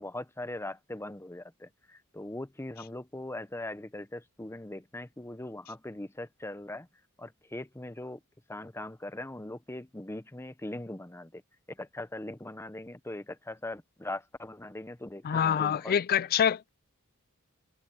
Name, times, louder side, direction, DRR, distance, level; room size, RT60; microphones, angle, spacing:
voice 1, 0.0-6.9 7.2-8.2 8.5-11.4 11.7-16.0, left 1 dB, 10° left, 0.9 m, -40 dB
voice 2, 15.2-16.7, left 8 dB, 45° left, 0.3 m, -26 dB
head